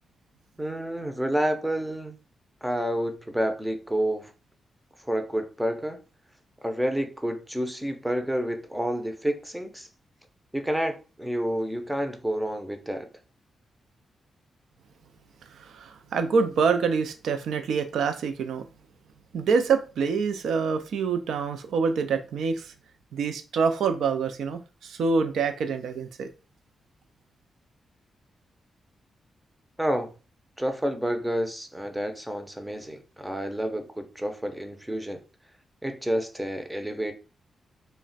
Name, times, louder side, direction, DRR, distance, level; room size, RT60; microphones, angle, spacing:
voice 1, 0.6-2.2 2.6-4.3 5.0-6.0 6.6-9.9 10.5-13.1 29.8-30.1 30.6-35.2 35.8-37.1, equal, 5° right, 0.5 m, -29 dB
voice 2, 15.6-18.7 19.3-22.7 23.1-26.3, right 5 dB, 85° right, 0.4 m, -26 dB
2.3 x 2.1 x 3.9 m
cardioid pair, 105°, 0 cm